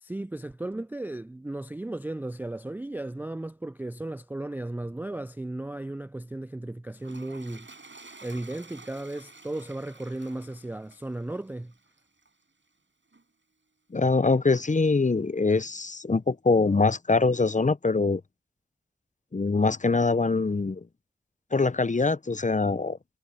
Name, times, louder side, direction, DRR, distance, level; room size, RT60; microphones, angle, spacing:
voice 1, 0.0-7.7 8.2-11.7, right 2 dB, 5° right, 0.4 m, -35 dB
Toilet flush, 6.9-12.4 13.1-13.2, right 3 dB, 35° right, 7.7 m, -51 dB
voice 2, 13.9-18.2 19.3-20.8 21.5-23.0, left 3 dB, 25° left, 0.8 m, -23 dB
supercardioid pair, 45°, 33 cm